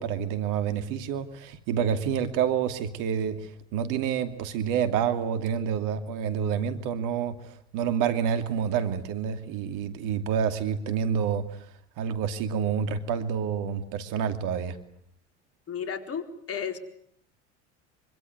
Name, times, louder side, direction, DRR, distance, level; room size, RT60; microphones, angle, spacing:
voice 1, 0.0-11.7 12.0-14.8, right 8 dB, 60° right, 9 dB, 2.7 m, -28 dB
voice 2, 15.7-16.8, left 7 dB, 40° left, 7 dB, 4.2 m, -33 dB
25.5 x 25.0 x 9.5 m, 0.66 s
hypercardioid pair, 75°, 35 cm